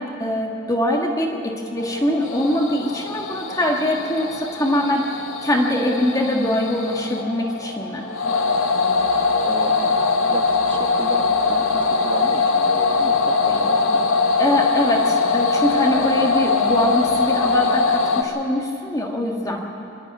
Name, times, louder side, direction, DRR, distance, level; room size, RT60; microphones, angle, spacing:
voice 1, 0.0-8.1 13.5-13.6 13.9-14.0 14.4-19.6, left 1 dB, 15° left, 0 dB, 1.6 m, -23 dB
sound 1, 1.8-18.2, left 4 dB, 85° left, 1.3 m, -21 dB
voice 2, 9.4-9.9 10.3-13.8 15.9-16.0, right 1 dB, 25° right, 6 dB, 1.1 m, -34 dB
24.0 x 11.5 x 9.5 m, 2.6 s
head